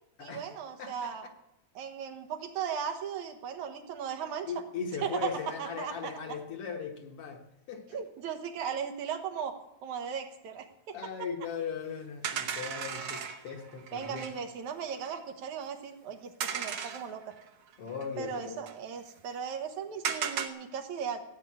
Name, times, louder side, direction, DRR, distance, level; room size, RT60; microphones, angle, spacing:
voice 1, 0.2-1.2 1.7-4.5 5.0-6.4 7.9-11.0 13.9-17.3 18.2-21.2, right 7 dB, 80° right, 6 dB, 2.7 m, -37 dB
voice 2, 0.8-1.3 4.5-8.0 10.9-14.3 17.8-18.6, left 6 dB, 60° left, 3 dB, 2.0 m, -38 dB
sound 1, 12.2-14.4 14.9-15.2 16.4-17.5 17.7-17.8 18.0-18.7 20.0-20.5, right 7 dB, 60° right, 1.4 m, -35 dB
16.0 x 6.8 x 9.4 m, 0.89 s
omnidirectional pair, 3.3 m